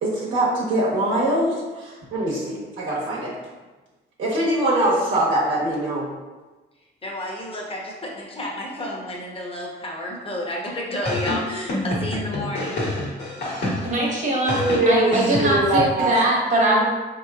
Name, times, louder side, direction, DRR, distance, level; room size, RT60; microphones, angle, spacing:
voice 1, 0.0-3.3 4.2-6.1 14.5-16.1, right 1 dB, 75° right, -7 dB, 1.2 m, -22 dB
voice 2, 6.8-12.8, left 1 dB, 30° left, -2 dB, 1.0 m, -31 dB
sound 1, 11.1-14.1 14.5-15.8, left 1 dB, 60° left, 1.3 m, -27 dB
voice 3, 13.8-14.6 14.9-16.8, right 1 dB, 40° right, -4 dB, 1.2 m, -21 dB
4.2 x 3.0 x 2.4 m, 1.2 s
cardioid pair, 90°, 20 cm